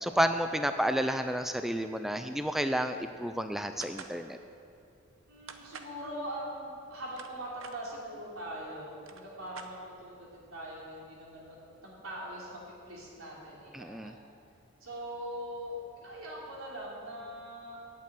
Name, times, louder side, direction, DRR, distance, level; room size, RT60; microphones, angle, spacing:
voice 1, 0.0-4.4 13.7-14.1, equal, ahead, 8 dB, 0.3 m, -30 dB
sound 1, 3.8-4.2 5.5-6.0 6.9-7.8 8.6-8.7 8.9-10.1, right 6 dB, 70° right, 0.8 m, -47 dB
voice 2, 5.3-12.6 12.9-14.1 14.8-17.8, equal, 90° right, -5 dB, 3.5 m, -42 dB
9.0 x 8.4 x 9.1 m, 2.5 s
head